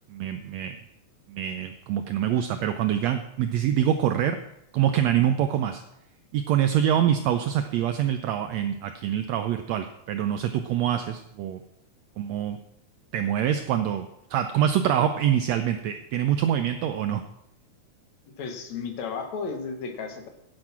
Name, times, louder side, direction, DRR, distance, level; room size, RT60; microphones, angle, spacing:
voice 1, 0.1-0.8 1.3-4.4 4.7-5.8 6.3-11.6 12.2-12.6 13.1-17.2, right 10 dB, 75° right, 8 dB, 1.6 m, -25 dB
voice 2, 18.4-20.3, left 5 dB, 65° left, 5 dB, 2.7 m, -33 dB
10.5 x 9.8 x 5.9 m, 0.80 s
omnidirectional pair, 3.6 m